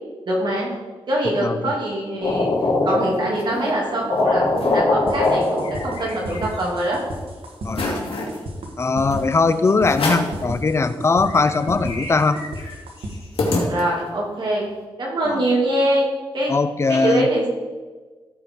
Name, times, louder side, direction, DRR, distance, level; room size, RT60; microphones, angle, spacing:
voice 1, 0.3-0.7 1.1-2.5 2.8-7.0 13.7-14.6 15.0-16.1 16.3-16.5 16.9-17.5, right 1 dB, 50° right, -3 dB, 2.7 m, -23 dB
voice 2, 1.4-1.7 7.6-8.2 8.8-12.4 15.3-15.4 16.5-17.3, left 4 dB, 30° left, 12 dB, 0.5 m, -20 dB
sound 1, 2.2-3.5 3.8-3.9 4.1-6.3, left 2 dB, 65° left, 2.9 m, -21 dB
sound 2, 2.9-3.7 4.2-4.3 4.5-4.8 5.2-6.8 7.2-7.3 7.7-8.4 9.1-9.2 9.8-10.4 10.9-11.0 11.2-14.2, left 2 dB, 85° left, 2.1 m, -28 dB
sound 3, 5.1-13.1, right 1 dB, 80° right, 1.6 m, -33 dB
14.5 x 4.9 x 4.7 m, 1.4 s
wide cardioid pair, 150°, 9 cm